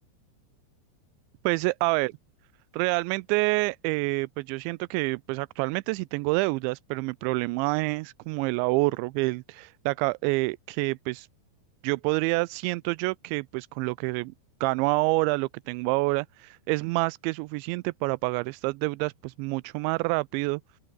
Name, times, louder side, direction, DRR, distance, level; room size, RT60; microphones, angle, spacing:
voice 1, 1.4-2.1 2.7-11.3 11.8-14.3 14.6-20.6, right 25 dB, 85° right, 2.8 m, -27 dB
open air
omnidirectional pair, 5.2 m